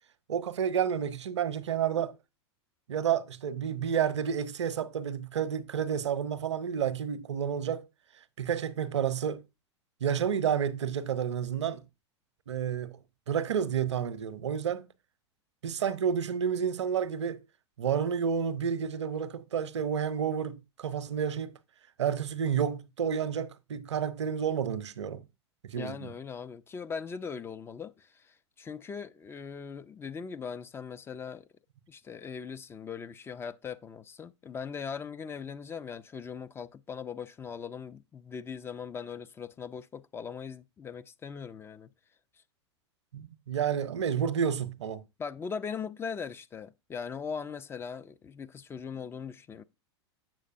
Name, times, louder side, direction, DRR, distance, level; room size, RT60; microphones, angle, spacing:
voice 1, 0.3-2.1 2.9-7.9 8.4-9.4 10.0-11.8 12.5-12.9 13.3-14.8 15.6-17.4 17.8-21.5 22.0-25.2 25.6-26.1 43.1-45.0, right 8 dB, 75° right, 0.7 m, -30 dB
voice 2, 25.8-31.5 31.9-41.9 45.2-49.6, left 6 dB, 15° left, 0.3 m, -40 dB
7.5 x 6.5 x 2.5 m
hypercardioid pair, 95°, 15 cm